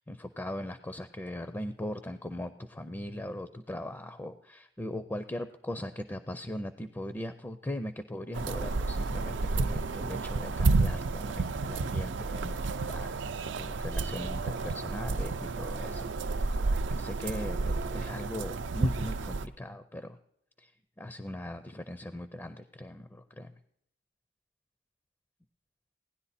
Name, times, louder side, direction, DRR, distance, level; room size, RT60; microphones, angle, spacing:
voice 1, 0.0-16.6 16.9-20.2 20.6-23.6, left 1 dB, 10° left, 11 dB, 0.4 m, -39 dB
sound 1, 8.3-19.5, right 3 dB, 80° right, 0.5 m, -31 dB
17.0 x 10.5 x 4.1 m, 0.72 s
head